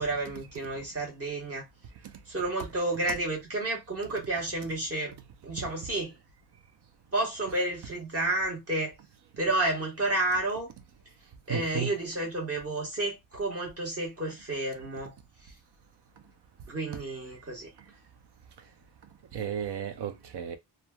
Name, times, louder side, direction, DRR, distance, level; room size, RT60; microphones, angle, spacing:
voice 1, 0.0-1.6 2.3-5.1 5.4-6.1 7.1-9.0 9.4-10.7 11.5-15.1 15.4-15.5 16.7-17.7, right 2 dB, 35° right, 1.3 m, -31 dB
voice 2, 11.5-11.9 19.3-20.6, right 8 dB, 70° right, 0.6 m, -33 dB
3.0 x 2.3 x 2.3 m
wide cardioid pair, 160°, 41 cm